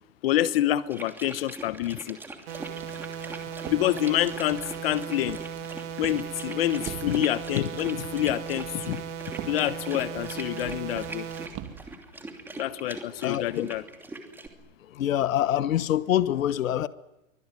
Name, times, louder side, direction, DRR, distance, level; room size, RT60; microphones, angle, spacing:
voice 1, 0.2-2.2 3.7-5.4 6.0-9.0 9.5-11.3 12.6-13.8, left 13 dB, 45° left, 1.0 m, -27 dB
sound 1, 0.9-14.5, right 2 dB, 5° right, 2.8 m, -42 dB
sound 2, 2.5-11.5, right 8 dB, 60° right, 3.4 m, -37 dB
Walk footsteps, 2.6-11.9, right 11 dB, 30° right, 2.7 m, -45 dB
voice 2, 13.2-13.6 14.9-16.9, left 11 dB, 70° left, 1.3 m, -25 dB
24.5 x 24.5 x 9.7 m
hypercardioid pair, 150°, 41 cm